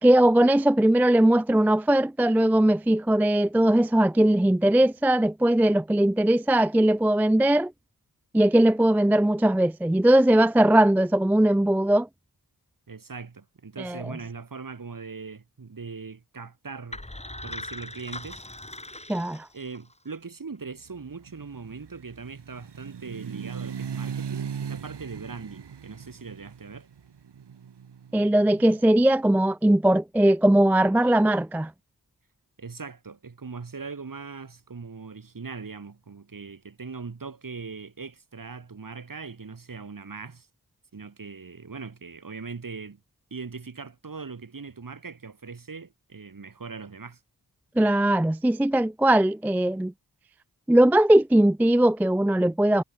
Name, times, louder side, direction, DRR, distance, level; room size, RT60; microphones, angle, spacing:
voice 1, 0.0-7.7 8.3-12.1 13.8-14.1 19.1-19.5 28.1-31.7 47.8-49.9 50.7-52.8, right 1 dB, 5° right, 0.3 m, -20 dB
voice 2, 12.9-17.0 17.4-18.4 19.5-26.9 32.6-40.5 40.9-43.0 43.3-47.2, right 4 dB, 55° right, 2.5 m, -40 dB
sound 1, 16.9-19.9, left 1 dB, 15° left, 3.7 m, -40 dB
sound 2, 20.9-28.9, right 7 dB, 90° right, 1.8 m, -38 dB
cardioid pair, 55°, 40 cm